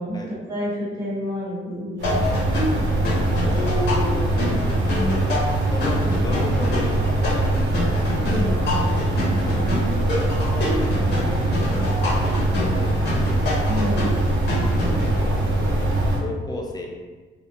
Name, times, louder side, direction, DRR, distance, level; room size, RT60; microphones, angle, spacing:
voice 1, 0.0-2.3 8.3-9.2 13.7-14.1, equal, 15° right, -7 dB, 1.0 m, -29 dB
sound 1, 2.0-15.1, left 2 dB, 60° left, 0.9 m, -27 dB
sound 2, 2.0-16.2, right 1 dB, 70° right, 0.6 m, -22 dB
voice 2, 3.4-4.6 5.7-7.7 8.2-8.8 10.4-13.1 14.8-16.9, left 2 dB, 20° left, 0 dB, 0.4 m, -34 dB
2.4 x 2.1 x 2.7 m, 1.4 s
cardioid pair, 90°, 20 cm